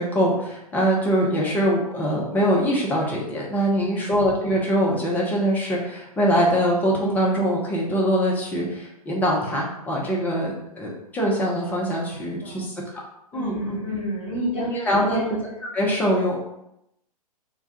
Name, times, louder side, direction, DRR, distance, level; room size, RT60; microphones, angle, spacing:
voice 1, 0.0-12.7 13.3-13.8 14.6-15.2 15.7-16.5, equal, 10° left, -3 dB, 0.5 m, -23 dB
voice 2, 3.7-4.1 12.2-12.7 13.3-15.3, left 1 dB, 30° left, -4 dB, 1.2 m, -31 dB
2.2 x 2.1 x 2.7 m, 0.83 s
figure-of-eight pair, 105°, 20 cm